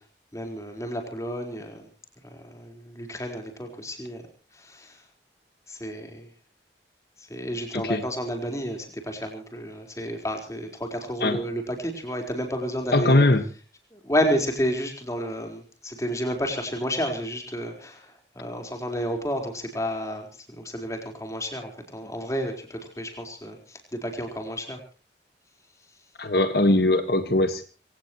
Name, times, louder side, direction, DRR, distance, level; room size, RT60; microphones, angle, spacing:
voice 1, 0.3-1.9 2.2-4.2 4.5-5.0 5.7-6.3 7.2-13.3 13.9-24.8, equal, 20° left, 3 dB, 4.4 m, -31 dB
voice 2, 12.9-13.4 26.2-27.6, left 2 dB, 60° left, 8 dB, 1.6 m, -20 dB
25.0 x 17.5 x 3.1 m, 0.38 s
head